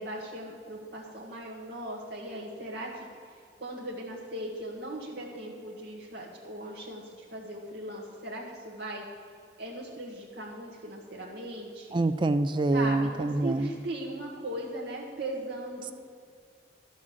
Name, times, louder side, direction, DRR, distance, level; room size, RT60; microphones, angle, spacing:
voice 1, 0.0-9.0 9.6-12.0 12.7-15.9, right 1 dB, 60° right, -3 dB, 1.6 m, -38 dB
voice 2, 11.9-13.7, right 2 dB, 25° right, 11 dB, 0.3 m, -26 dB
12.0 x 6.2 x 7.7 m, 2.3 s
head